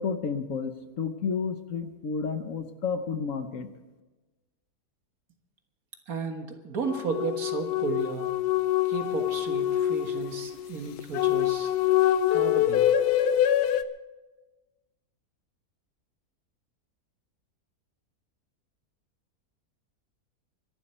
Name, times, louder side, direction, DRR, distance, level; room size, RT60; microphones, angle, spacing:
voice 1, 0.0-3.7, left 5 dB, 60° left, 9 dB, 1.3 m, -31 dB
voice 2, 6.1-8.3 8.9-11.7 12.3-12.9, right 4 dB, 65° right, 5 dB, 2.0 m, -33 dB
sound 1, 6.8-13.8, left 11 dB, 90° left, 1.2 m, -25 dB
24.0 x 11.5 x 4.4 m, 1.2 s
omnidirectional pair, 1.6 m